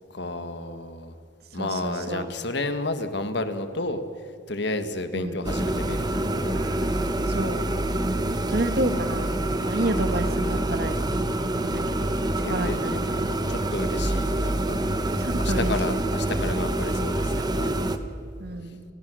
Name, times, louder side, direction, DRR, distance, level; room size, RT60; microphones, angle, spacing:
voice 1, 0.1-1.1 1.5-4.0 4.5-6.0 6.4-6.6 7.9-8.6 9.8-10.2 12.4-12.8 13.5-14.8 15.4-17.7, left 2 dB, 60° left, 9 dB, 1.7 m, -32 dB
voice 2, 1.6-2.3 5.1-5.4 6.5-6.7 7.3-7.6 8.5-9.3 9.6-11.0 11.5-12.1 12.5-13.3 15.2-15.7 18.4-18.8, right 1 dB, 50° right, 8 dB, 1.8 m, -30 dB
sound 1, 5.4-18.0, right 1 dB, 20° right, 1.0 m, -26 dB
29.5 x 20.0 x 6.4 m, 2.4 s
head